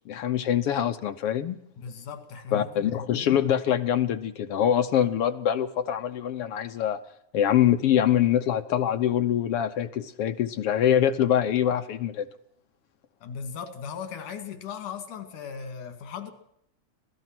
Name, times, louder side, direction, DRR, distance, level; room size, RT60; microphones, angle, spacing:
voice 1, 0.1-1.6 2.5-7.0 7.3-12.3, left 10 dB, 65° left, 10 dB, 1.6 m, -24 dB
voice 2, 1.8-3.4 13.2-16.3, left 6 dB, 85° left, 8 dB, 3.7 m, -38 dB
25.5 x 18.0 x 6.0 m, 0.72 s
omnidirectional pair, 3.4 m